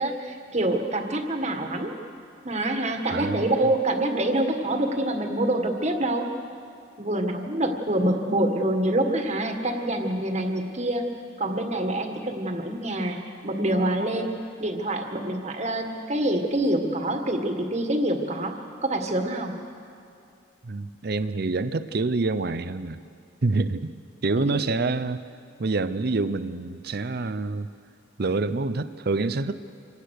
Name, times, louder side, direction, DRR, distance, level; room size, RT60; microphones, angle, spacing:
voice 1, 0.0-1.9 2.4-6.3 7.0-11.0 11.4-13.2 13.4-18.5 18.8-19.5 24.4-24.5, right 1 dB, 35° right, 4 dB, 1.8 m, -26 dB
voice 2, 3.1-3.5 20.6-23.0 23.4-25.2 25.6-27.7 28.2-29.6, right 3 dB, 55° right, 13 dB, 0.6 m, -27 dB
26.0 x 18.0 x 6.6 m, 2.6 s
head